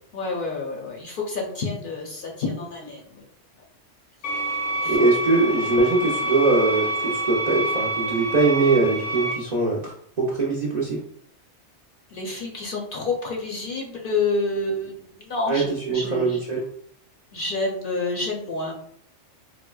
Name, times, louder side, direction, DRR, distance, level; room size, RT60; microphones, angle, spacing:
voice 1, 0.1-3.2 4.8-5.4 12.1-16.4 17.3-18.7, left 3 dB, 55° left, -1 dB, 0.7 m, -29 dB
sound 1, 4.2-9.3, right 1 dB, 85° left, 1.0 m, -27 dB
voice 2, 4.9-9.9 10.2-11.0 15.5-16.6, right 3 dB, 50° right, -3 dB, 0.5 m, -22 dB
4.2 x 2.1 x 2.2 m, 0.62 s
omnidirectional pair, 1.2 m